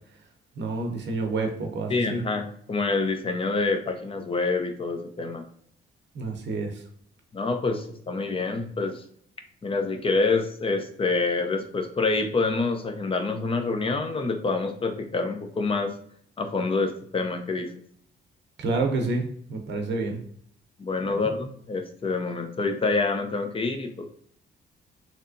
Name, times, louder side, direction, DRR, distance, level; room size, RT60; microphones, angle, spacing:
voice 1, 0.6-2.2 6.1-6.8 18.6-20.2 21.0-21.3, right 3 dB, 60° right, 3 dB, 0.7 m, -29 dB
voice 2, 1.9-5.4 7.3-9.0 9.6-15.9 16.4-17.7 20.8-24.0, left 3 dB, 25° left, 6 dB, 0.5 m, -27 dB
3.2 x 2.8 x 2.6 m, 0.63 s
cardioid pair, 90°, 20 cm